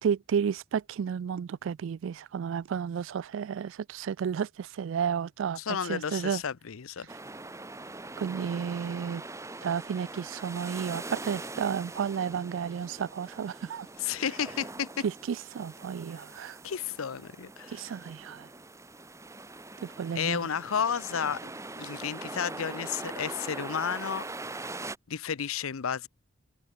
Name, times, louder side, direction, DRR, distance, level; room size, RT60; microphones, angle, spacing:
voice 1, 0.0-6.4 8.2-9.2 9.6-13.9 15.0-16.6 17.7-18.5 19.8-20.4, right 7 dB, 70° right, 0.3 m, -32 dB
voice 2, 5.6-7.1 14.0-15.0 16.6-17.7 20.1-21.4 21.8-24.2 25.1-26.1, left 7 dB, 85° left, 0.6 m, -32 dB
sound 1, 7.1-25.0, right 2 dB, 15° right, 1.2 m, -42 dB
open air
head